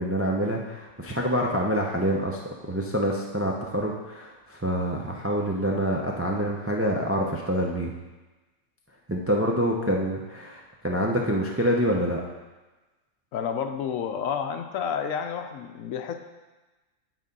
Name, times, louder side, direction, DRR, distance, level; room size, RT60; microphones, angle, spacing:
voice 1, 0.0-2.4 2.7-7.9 9.1-12.2, equal, 20° right, -1 dB, 0.3 m, -26 dB
voice 2, 13.3-16.1, left 7 dB, 70° left, 7 dB, 1.0 m, -30 dB
9.3 x 4.1 x 5.3 m, 1.2 s
omnidirectional pair, 1.5 m